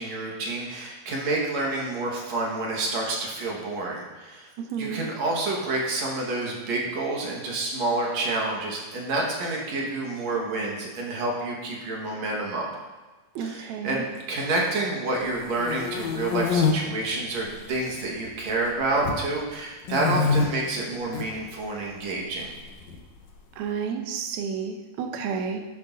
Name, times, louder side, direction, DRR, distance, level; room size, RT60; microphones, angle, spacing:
voice 1, 0.0-4.5 4.8-12.7 13.4-22.5, right 2 dB, 55° right, -2 dB, 2.4 m, -28 dB
voice 2, 4.7-5.1 13.3-14.0 23.6-25.6, right 6 dB, 90° right, 4 dB, 1.5 m, -31 dB
sound 1, 15.3-16.7 17.4-18.0 18.3-19.2 19.8-20.5 21.0-21.3 22.4-23.3, left 5 dB, 65° left, 1.8 m, -26 dB
11.5 x 10.5 x 2.7 m, 1.2 s
omnidirectional pair, 4.3 m